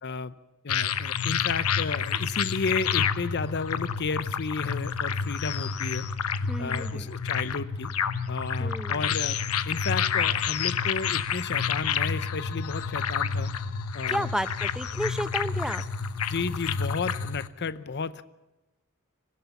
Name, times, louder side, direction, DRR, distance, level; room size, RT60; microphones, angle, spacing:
voice 1, 0.0-0.3 0.6-6.1 6.6-7.9 8.3-9.4 9.7-13.5 13.9-14.3 16.3-18.2, left 4 dB, 50° left, 15 dB, 0.7 m, -32 dB
sound 1, 0.7-17.5, left 6 dB, 90° left, 1.0 m, -29 dB
voice 2, 6.5-7.1 8.6-9.0 14.1-15.8, equal, 5° right, 12 dB, 0.7 m, -32 dB
24.5 x 16.0 x 7.0 m, 1.0 s
head